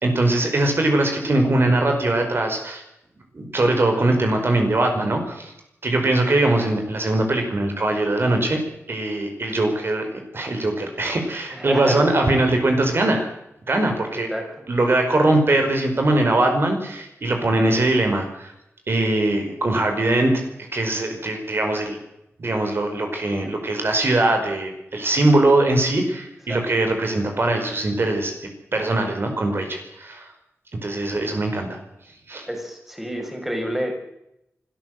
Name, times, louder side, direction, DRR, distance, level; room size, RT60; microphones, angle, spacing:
voice 1, 0.0-2.8 3.3-5.5 5.8-8.6 8.9-10.1 10.3-13.3 13.7-14.3 14.7-18.5 18.9-20.3 20.7-22.0 22.4-28.3 28.7-30.3 30.8-31.8 32.3-32.5, right 2 dB, 50° right, 4 dB, 5.2 m, -21 dB
voice 2, 11.5-12.0 14.3-14.5 26.5-26.6 32.5-34.0, equal, 5° right, 3 dB, 5.9 m, -28 dB
25.0 x 13.5 x 7.9 m, 0.83 s
wide cardioid pair, 110°, 5 cm